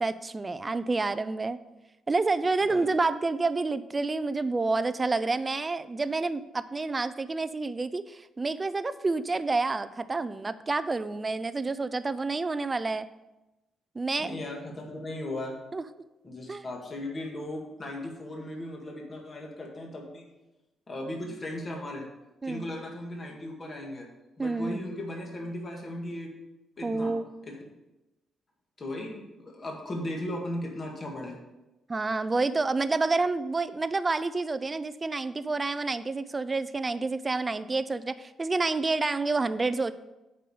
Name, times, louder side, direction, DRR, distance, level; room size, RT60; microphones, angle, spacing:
voice 1, 0.0-1.6 2.1-13.1 14.0-14.3 15.7-15.8 16.5-16.6 22.4-22.7 24.4-24.8 26.8-27.3 31.9-39.9, right 3 dB, 25° right, 13 dB, 0.5 m, -29 dB
voice 2, 14.2-15.6 16.2-20.3 20.9-22.1 22.4-24.1 24.4-26.3 26.8-27.1 27.5-27.6 28.8-31.4, left 1 dB, 35° left, 0 dB, 1.9 m, -37 dB
7.6 x 5.6 x 6.7 m, 0.99 s
cardioid pair, 110°, 0 cm